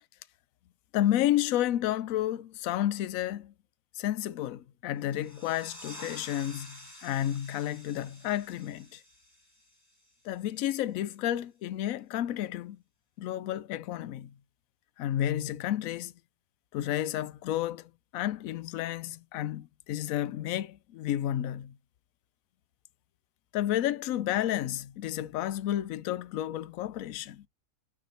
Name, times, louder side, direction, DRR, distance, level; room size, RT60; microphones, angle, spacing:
voice 1, 0.9-3.5 3.9-9.0 10.2-12.8 13.2-14.3 15.0-16.1 16.7-21.8 23.5-27.5, left 12 dB, 75° left, 1.0 m, -31 dB
sound 1, 5.0-10.4, equal, 25° left, 2.7 m, -50 dB
6.0 x 5.8 x 4.3 m
omnidirectional pair, 1.5 m